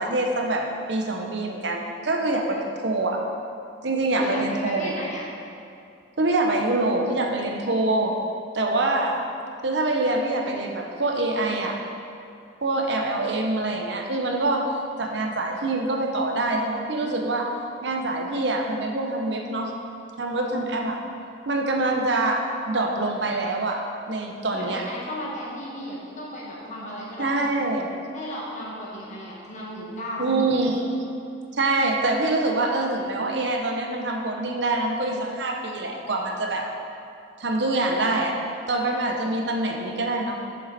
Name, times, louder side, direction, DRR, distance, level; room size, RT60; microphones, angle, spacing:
voice 1, 0.0-3.2 3.8-4.9 6.2-8.1 8.5-9.3 9.6-11.8 12.6-14.6 15.0-17.5 17.8-19.7 20.2-21.0 21.5-23.8 24.1-24.8 27.2-27.9 30.2-30.9 31.5-36.7 37.4-38.4 38.7-40.4, right 2 dB, 60° right, 1 dB, 0.8 m, -25 dB
voice 2, 4.2-5.2 24.5-27.5 28.1-30.6, left 1 dB, 40° left, -5 dB, 1.7 m, -35 dB
7.7 x 6.9 x 4.2 m, 2.6 s
head